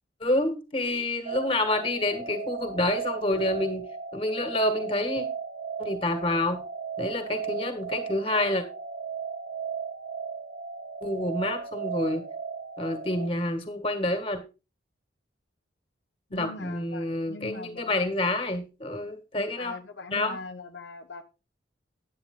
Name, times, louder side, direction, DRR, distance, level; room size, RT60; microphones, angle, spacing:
voice 1, 0.2-3.9 4.1-5.3 5.8-6.6 7.0-8.6 11.0-12.2 12.8-14.4 16.3-19.7 20.1-20.4, left 1 dB, 30° left, 1.9 m, -28 dB
sound 1, 1.2-13.3, right 6 dB, 55° right, 1.5 m, -36 dB
voice 2, 16.3-18.0 19.4-21.2, left 3 dB, 70° left, 1.0 m, -41 dB
10.0 x 9.0 x 3.8 m
head